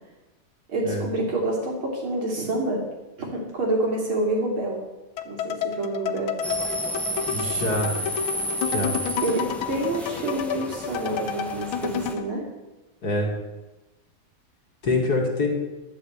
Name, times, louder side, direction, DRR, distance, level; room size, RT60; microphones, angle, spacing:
voice 1, 0.7-2.8 3.3-4.8 5.3-6.3 9.2-12.4, right 2 dB, 85° right, -2 dB, 4.2 m, -27 dB
sound 1, 5.2-12.3, left 8 dB, 90° left, 1.7 m, -31 dB
sound 2, 6.4-12.1, equal, ahead, 0.8 m, -31 dB
voice 2, 7.2-8.0 8.7-9.0 13.0-13.3 14.8-15.5, left 2 dB, 50° left, 0 dB, 2.8 m, -25 dB
11.5 x 7.7 x 8.3 m, 1.1 s
omnidirectional pair, 2.2 m